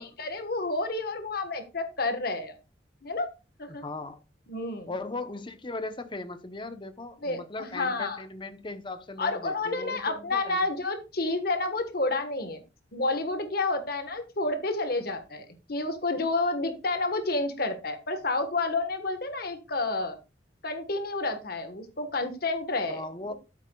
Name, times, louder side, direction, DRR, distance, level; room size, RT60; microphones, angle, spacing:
voice 1, 0.2-2.5 3.0-3.3 3.6-3.8 4.5-4.9 7.2-8.2 9.2-12.6 12.9-20.2 20.6-23.0, left 2 dB, 50° left, 1.4 m, -30 dB
voice 2, 3.7-4.2 4.9-10.6 22.9-23.3, left 2 dB, 25° left, 0.8 m, -38 dB
11.5 x 8.4 x 2.3 m
head